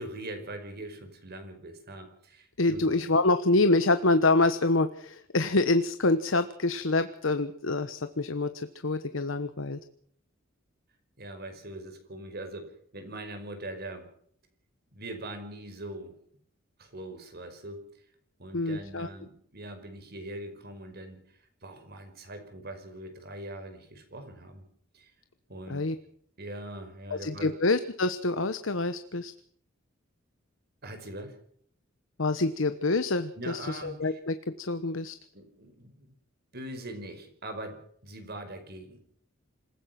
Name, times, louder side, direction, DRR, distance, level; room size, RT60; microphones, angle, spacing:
voice 1, 0.0-3.0 11.2-14.1 14.9-16.1 16.8-17.8 18.4-21.2 21.6-24.6 24.9-25.1 25.5-25.8 26.4-27.5 30.8-31.4 33.4-34.2 35.3-36.1 36.5-39.0, right 1 dB, 55° right, 7 dB, 5.3 m, -42 dB
voice 2, 2.6-9.8 18.5-19.1 25.7-25.9 27.1-29.3 32.2-35.2, left 2 dB, 70° left, 10 dB, 1.2 m, -26 dB
27.0 x 16.5 x 6.0 m, 0.62 s
head